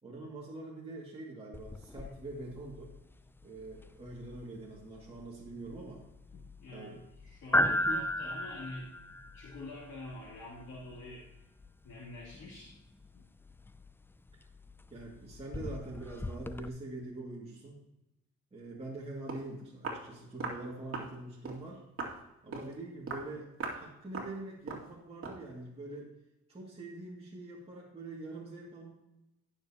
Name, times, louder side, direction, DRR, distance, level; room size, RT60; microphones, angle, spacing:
voice 1, 0.0-3.0 3.4-6.0 6.7-7.0 7.7-8.1 14.9-17.8 18.5-21.9 22.4-23.5 23.7-26.1 26.5-28.9, right 2 dB, 20° right, -5 dB, 2.3 m, -44 dB
sound 1, 1.5-16.7, left 1 dB, 10° left, 0.4 m, -38 dB
voice 2, 6.3-8.9 9.3-11.3 11.8-12.7 13.1-13.2, left 2 dB, 60° left, -7 dB, 3.2 m, -46 dB
Walk footsteps, 19.0-19.1 19.3-19.5 19.8-20.1 20.4-20.6 20.9-21.1 21.4-21.6 22.0-22.2 22.5-22.7 23.1-23.3 23.6-23.8 24.1-24.4 24.7-24.9 25.2-25.4, right 3 dB, 50° right, 2.4 m, -39 dB
17.0 x 6.8 x 2.9 m, 0.91 s
cardioid pair, 90°, 30 cm